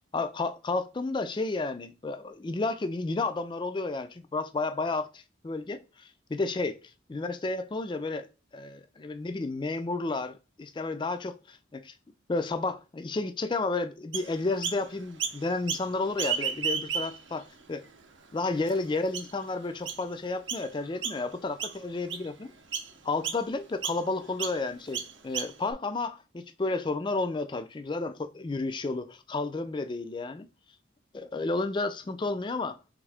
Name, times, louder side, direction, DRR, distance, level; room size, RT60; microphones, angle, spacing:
voice 1, 0.1-6.8 7.1-8.3 8.5-11.9 12.3-17.4 17.7-17.8 18.3-22.5 23.0-30.5 31.1-32.8, left 3 dB, 25° left, 0.3 m, -31 dB
Chirp tweet, 14.1-14.8 15.2-15.9 16.1-17.3 17.9-18.0 18.7-18.8 19.1-19.4 19.9-20.0 20.5-20.7 21.0-21.3 21.6-22.3 22.7-22.9 23.2-23.4 23.8-24.0 24.4-24.6 24.9-25.7, right 7 dB, 65° right, 0.6 m, -32 dB
3.6 x 3.4 x 3.3 m
head